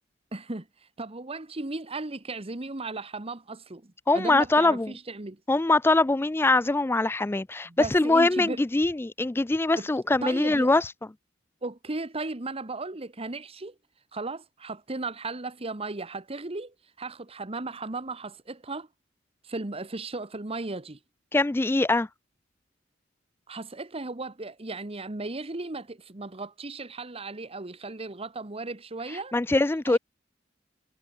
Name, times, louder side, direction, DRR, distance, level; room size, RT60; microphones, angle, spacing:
voice 1, 0.3-5.4 7.6-8.6 9.7-9.9 10.2-10.8 11.6-13.7 14.1-18.9 19.4-21.0 23.5-29.3 29.9-30.0, right 3 dB, 30° right, 1.3 m, -36 dB
voice 2, 4.1-4.9 5.5-10.8 21.3-22.1 29.3-30.0, left 2 dB, 10° left, 0.4 m, -23 dB
head